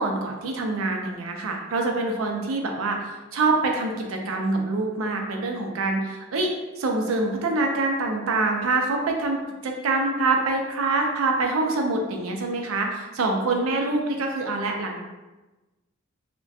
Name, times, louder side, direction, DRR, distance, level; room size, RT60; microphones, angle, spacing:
voice 1, 0.0-6.5 6.8-15.0, right 3 dB, 90° right, 2 dB, 0.4 m, -25 dB
2.6 x 2.1 x 2.3 m, 1.1 s
head